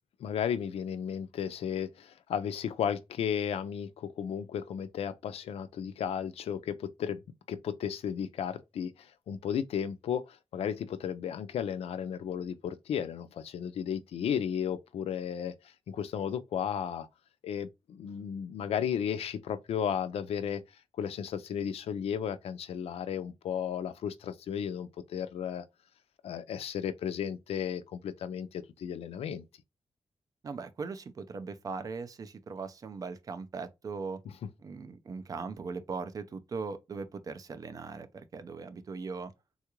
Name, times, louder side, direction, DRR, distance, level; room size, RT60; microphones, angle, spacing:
voice 1, 0.2-7.2 7.5-15.5 15.9-17.1 17.4-20.6 21.0-25.7 26.2-29.4, left 8 dB, 85° left, 0.4 m, -34 dB
voice 2, 30.4-34.2 34.6-39.3, right 4 dB, 35° right, 0.4 m, -39 dB
3.6 x 2.3 x 2.9 m
wide cardioid pair, 180°, 10 cm